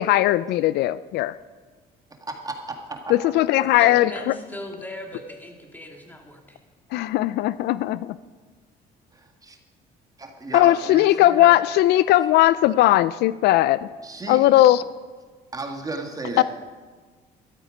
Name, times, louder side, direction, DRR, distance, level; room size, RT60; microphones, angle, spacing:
voice 1, 0.0-1.3 3.1-4.3 6.9-8.2 10.5-13.8 14.3-14.8 16.4-16.5, left 15 dB, 75° left, 0.4 m, -18 dB
voice 2, 2.9-3.3 9.1-9.6 10.2-11.6 12.2-12.6 14.0-14.6 15.5-16.4, right 2 dB, 20° right, 1.7 m, -34 dB
voice 3, 3.7-6.6, left 1 dB, 10° left, 2.5 m, -38 dB
13.0 x 12.0 x 5.1 m
cardioid pair, 110°, 17 cm